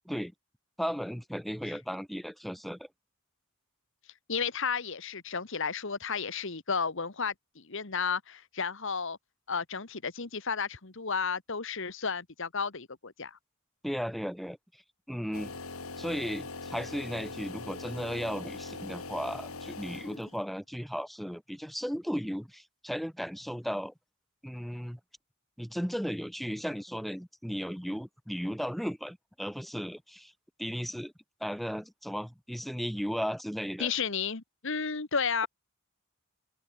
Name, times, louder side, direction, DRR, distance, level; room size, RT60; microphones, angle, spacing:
voice 1, 0.8-2.9 13.8-14.6 15.1-15.5 16.0-23.9 24.4-25.0 25.6-30.3 30.6-31.1 31.4-33.9, equal, ahead, 2.2 m, -35 dB
voice 2, 4.3-9.2 9.5-13.4 33.8-35.5, left 5 dB, 60° left, 1.6 m, -32 dB
sound 1, 15.3-20.5, left 3 dB, 90° left, 3.0 m, -42 dB
head